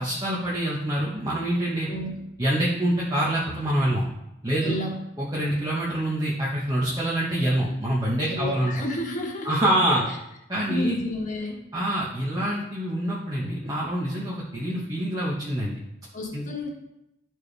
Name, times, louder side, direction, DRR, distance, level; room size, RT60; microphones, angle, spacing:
voice 1, 0.0-1.9 2.4-4.1 4.4-4.8 5.2-8.7 9.4-10.0 10.5-10.9 11.7-15.8 16.3-16.4, right 1 dB, 20° right, -6 dB, 1.2 m, -26 dB
voice 2, 4.6-4.9 8.2-9.7 10.7-11.6 16.1-16.7, left 1 dB, 40° left, -1 dB, 1.7 m, -31 dB
12.5 x 4.6 x 3.4 m, 0.86 s
head